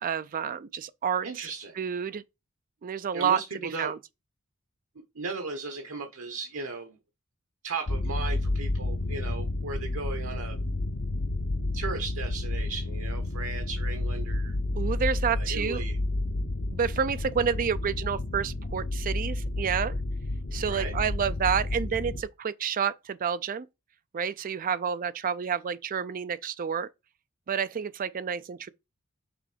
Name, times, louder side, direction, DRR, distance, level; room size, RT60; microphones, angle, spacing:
voice 1, 0.0-1.5 1.8-2.2 2.8-3.4 3.8-4.0 14.7-15.8 16.7-20.0 20.5-23.7 24.1-26.9 27.5-28.7, right 7 dB, 40° right, 0.4 m, -29 dB
voice 2, 1.2-1.8 3.1-3.9 5.1-7.0 7.6-10.7 11.7-14.6 15.3-16.0 20.7-20.9, right 4 dB, 65° right, 1.0 m, -36 dB
sound 1, 7.9-22.2, left 2 dB, 55° left, 0.8 m, -31 dB
6.0 x 3.7 x 5.0 m
head